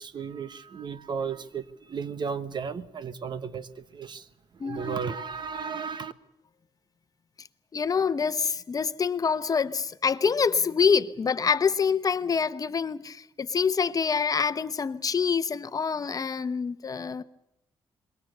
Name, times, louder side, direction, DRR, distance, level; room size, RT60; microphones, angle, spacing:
voice 1, 0.0-3.7 3.9-4.2 4.6-6.1, right 6 dB, 50° right, 1.2 m, -34 dB
voice 2, 4.6-5.0 7.7-17.2, left 6 dB, 40° left, 0.9 m, -26 dB
26.5 x 22.5 x 6.7 m
cardioid pair, 100°, 10 cm